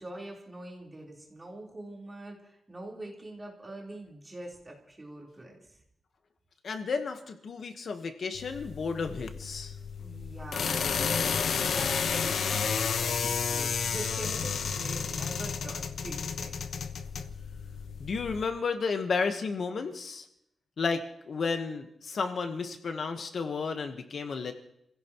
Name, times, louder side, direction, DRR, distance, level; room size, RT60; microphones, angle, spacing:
voice 1, 0.0-5.8 10.0-16.6, right 1 dB, 20° right, -2 dB, 3.8 m, -44 dB
voice 2, 6.6-9.7 18.0-20.3 20.8-24.5, left 4 dB, 55° left, 6 dB, 1.1 m, -32 dB
sound 1, 8.3-18.4, left 6 dB, 80° left, 1.0 m, -31 dB
29.5 x 16.5 x 3.0 m, 0.77 s
wide cardioid pair, 160°, 0 cm